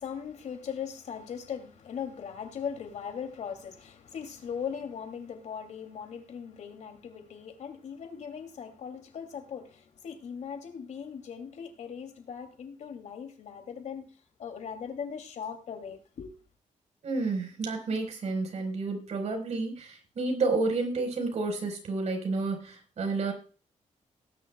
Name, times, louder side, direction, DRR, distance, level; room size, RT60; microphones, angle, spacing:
voice 1, 0.0-14.1 14.4-16.3, left 7 dB, 65° left, 2.7 m, -39 dB
voice 2, 17.0-23.3, right 3 dB, 60° right, 4.5 m, -30 dB
19.0 x 10.5 x 2.3 m
wide cardioid pair, 135°, 13 cm